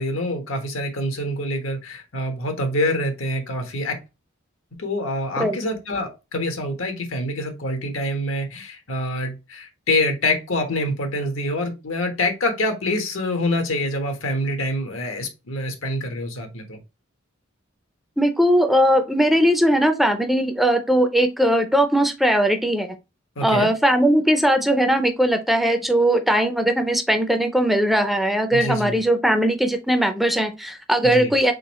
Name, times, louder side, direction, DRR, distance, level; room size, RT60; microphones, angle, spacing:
voice 1, 0.0-4.0 4.8-16.8 23.4-23.7 28.5-29.0 31.0-31.3, left 1 dB, 85° left, 6 dB, 1.1 m, -26 dB
voice 2, 18.2-22.9 23.4-31.5, equal, ahead, 6 dB, 0.4 m, -19 dB
3.9 x 3.4 x 3.0 m, 0.26 s
head